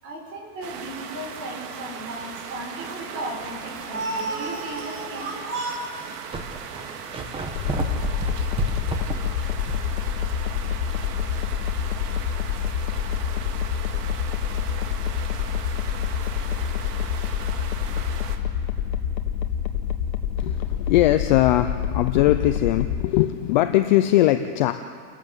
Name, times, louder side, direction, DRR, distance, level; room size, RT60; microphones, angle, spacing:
voice 1, 0.0-5.7, right 2 dB, 30° right, -1 dB, 6.0 m, -33 dB
Tropical Rain - moderate, 0.6-18.4, right 7 dB, 75° right, 2.3 m, -38 dB
sound 1, 3.8-4.0 4.7-4.8 5.7-5.8 6.0-10.0 10.3-10.4 14.0-14.1, right 3 dB, 10° right, 1.3 m, -31 dB
sound 2, 7.5-23.0, left 8 dB, 60° left, 1.8 m, -27 dB
voice 2, 20.4-24.7, left 14 dB, 30° left, 9 dB, 0.4 m, -20 dB
29.5 x 12.0 x 7.9 m, 2.2 s
supercardioid pair, 155°, 47 cm